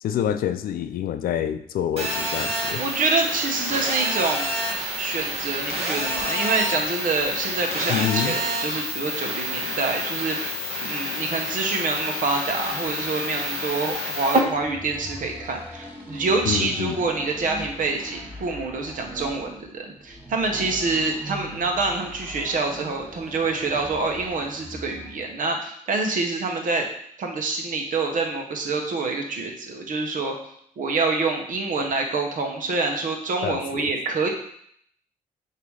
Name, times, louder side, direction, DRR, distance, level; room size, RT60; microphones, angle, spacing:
voice 1, 0.0-2.8 7.9-8.3 16.4-17.0 33.4-33.9, left 9 dB, 75° left, 10 dB, 0.5 m, -27 dB
Telephone, 2.0-14.4, equal, 45° right, 1.8 m, -28 dB
voice 2, 2.8-4.5 5.0-26.8 27.2-30.4 30.8-34.3, right 3 dB, 60° right, 3 dB, 1.2 m, -26 dB
sound 1, 14.5-25.2, equal, 10° right, 1.8 m, -40 dB
6.7 x 3.0 x 4.8 m, 0.67 s
cardioid pair, 85°, 15 cm